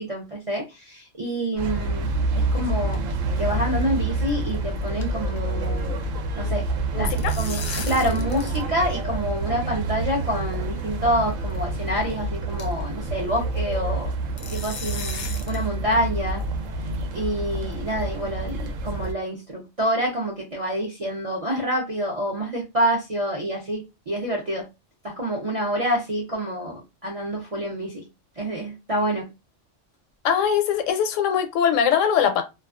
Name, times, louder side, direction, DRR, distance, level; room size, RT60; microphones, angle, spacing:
voice 1, 0.0-2.1 2.3-3.0 3.4-6.0 6.3-6.7 7.0-14.1 14.5-16.4 17.1-24.7 25.0-28.1 28.4-29.3, right 1 dB, 50° right, 0.4 m, -27 dB
sound 1, 1.6-19.1, right 2 dB, 90° right, 1.0 m, -28 dB
sound 2, 2.3-3.1 3.4-3.5 3.8-3.9 4.3-4.5 4.8-5.6 5.8-6.1 6.9-8.7 8.9-9.0 9.9-10.0 10.8-11.0 11.5-11.6 12.0-12.1 12.6-12.9 14.4-15.7, left 5 dB, 60° left, 0.5 m, -37 dB
voice 2, 6.9-7.3 30.2-32.4, left 8 dB, 85° left, 0.9 m, -21 dB
2.3 x 2.3 x 2.3 m
omnidirectional pair, 1.3 m